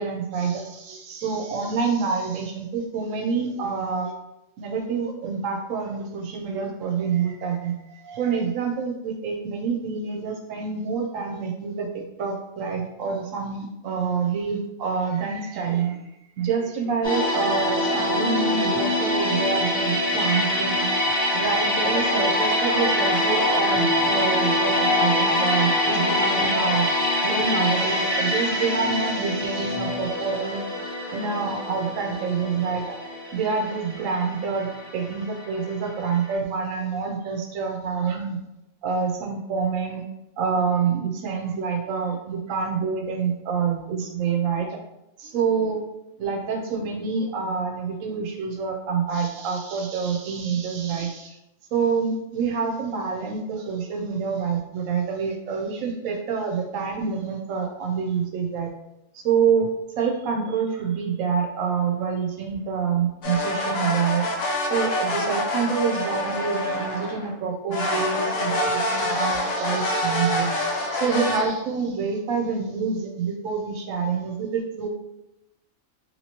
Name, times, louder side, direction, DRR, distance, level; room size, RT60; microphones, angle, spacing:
voice 1, 0.0-4.1 4.6-16.1 16.4-20.9 21.3-26.9 27.2-30.6 31.1-32.8 33.3-38.4 38.8-40.0 40.4-44.8 45.2-45.8 46.2-51.4 51.7-58.7 59.1-64.3 64.6-74.9, right 5 dB, 80° right, 1 dB, 1.0 m, -27 dB
sound 1, 17.0-35.9 36.1-36.3, left 1 dB, 25° left, 0.6 m, -24 dB
sound 2, 63.2-67.3 67.7-71.4, left 1 dB, 70° left, 0.9 m, -26 dB
2.9 x 2.9 x 2.8 m, 0.89 s
omnidirectional pair, 1.4 m